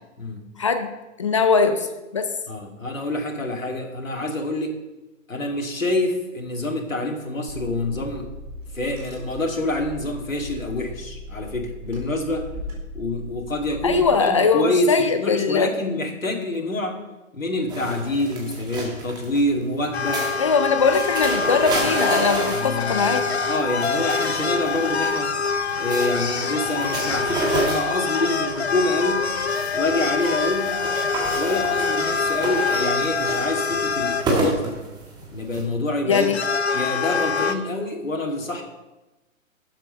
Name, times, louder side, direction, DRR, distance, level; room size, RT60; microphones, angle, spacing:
voice 1, 0.6-0.9 1.2-1.9 2.1-2.3 13.8-15.7 20.4-23.2 36.1-36.4, left 5 dB, 25° left, 9 dB, 0.5 m, -20 dB
voice 2, 2.5-4.8 5.3-8.3 8.7-12.4 12.9-17.0 17.3-20.2 21.7-22.0 22.5-25.3 25.8-29.3 29.7-30.8 31.3-34.8 35.3-36.3 36.7-38.6, left 2 dB, 70° left, 1 dB, 2.5 m, -26 dB
Car / Engine, 7.5-14.1, left 1 dB, 35° right, 4.5 m, -38 dB
sound 1, 17.7-35.6, right 2 dB, 10° right, 1.4 m, -31 dB
sound 2, 19.9-34.3 35.2-35.3 36.0-37.6, left 5 dB, 50° left, 1.1 m, -25 dB
12.0 x 7.8 x 5.4 m, 1.0 s
figure-of-eight pair, 125°, 41 cm